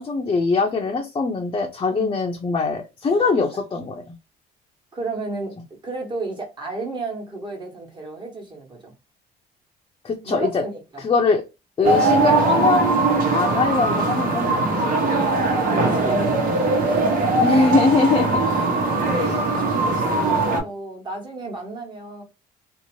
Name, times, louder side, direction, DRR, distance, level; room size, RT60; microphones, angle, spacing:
voice 1, 0.0-4.1 10.0-10.6 11.0-11.4 11.8-13.0 13.3-14.7 17.4-18.4 19.2-19.3, left 4 dB, 30° left, 0.6 m, -21 dB
voice 2, 1.9-2.3 3.1-3.3 4.9-8.9 10.2-10.8 11.8-11.9 15.3-17.4 18.4-22.2, right 3 dB, 25° right, 1.2 m, -33 dB
sound 1, 11.8-20.6, right 2 dB, 55° right, 1.0 m, -20 dB
2.8 x 2.1 x 3.0 m
cardioid pair, 110°, 17 cm